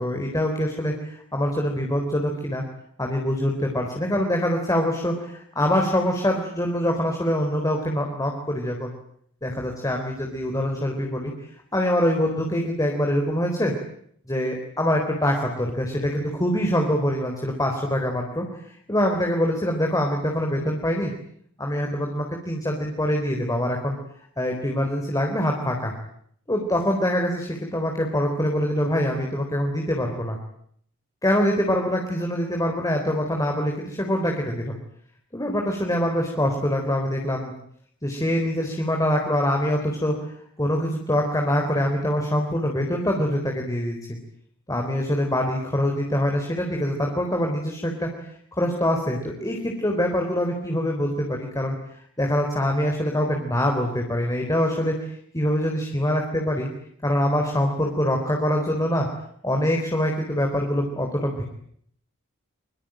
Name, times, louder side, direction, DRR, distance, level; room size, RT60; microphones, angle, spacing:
voice 1, 0.0-2.6 3.0-8.9 9.4-11.3 11.7-13.7 14.3-21.1 21.6-24.0 24.4-25.9 26.5-30.4 31.2-34.7 35.3-37.5 38.0-44.0 44.7-48.1 48.5-56.7 57.0-59.1 59.4-61.4, equal, 15° left, 2 dB, 3.9 m, -24 dB
25.5 x 24.5 x 9.0 m, 0.68 s
head